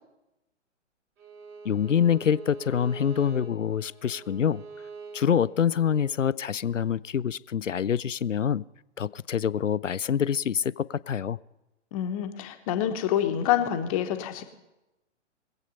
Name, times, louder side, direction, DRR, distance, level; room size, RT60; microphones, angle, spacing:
Bowed string instrument, 1.2-6.2, right 4 dB, 30° right, 2.2 m, -44 dB
voice 1, 1.6-4.6 5.1-8.6 9.0-11.4, left 8 dB, 85° left, 20 dB, 0.5 m, -26 dB
voice 2, 11.9-14.4, left 10 dB, 30° left, 7 dB, 1.2 m, -27 dB
21.5 x 8.3 x 5.5 m, 0.97 s
figure-of-eight pair, 120°, 36 cm